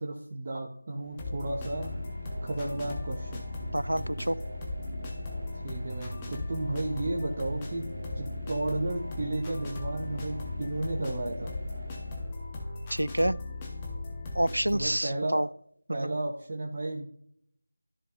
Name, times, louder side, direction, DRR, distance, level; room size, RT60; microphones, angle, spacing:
voice 1, 0.0-1.9 2.4-3.4 5.6-7.8 8.1-11.5 14.7-15.4 15.9-17.0, right 2 dB, 25° right, 0 dB, 0.8 m, -33 dB
sound 1, 1.0-12.8, right 1 dB, 55° right, 1.6 m, -42 dB
sound 2, 1.2-14.9, left 2 dB, 10° left, 1.0 m, -38 dB
voice 2, 3.7-4.4 12.9-13.4 14.3-15.5 15.9-16.2, right 1 dB, 75° right, 20 dB, 0.3 m, -28 dB
13.5 x 5.1 x 2.5 m, 0.67 s
figure-of-eight pair, 170°, 0 cm